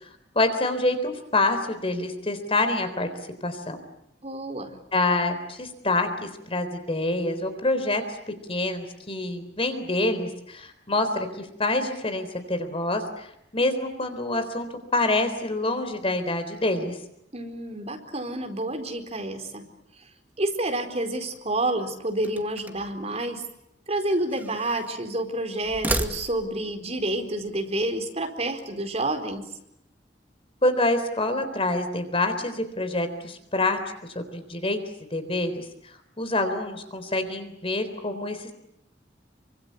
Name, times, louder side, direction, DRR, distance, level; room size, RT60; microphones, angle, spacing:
voice 1, 0.4-3.1 3.4-3.8 4.9-8.0 8.5-13.3 13.5-16.9 30.6-33.8 34.2-34.8 35.1-35.6 36.2-38.4, left 2 dB, 30° left, 9 dB, 3.8 m, -26 dB
voice 2, 4.2-4.8 17.3-19.6 20.0-20.1 20.4-23.4 23.9-29.5, right 1 dB, 35° right, 5 dB, 4.4 m, -29 dB
sound 1, 22.2-23.0 23.9-25.0 25.6-26.7, right 1 dB, 10° right, 1.9 m, -33 dB
27.0 x 25.0 x 8.3 m, 0.79 s
head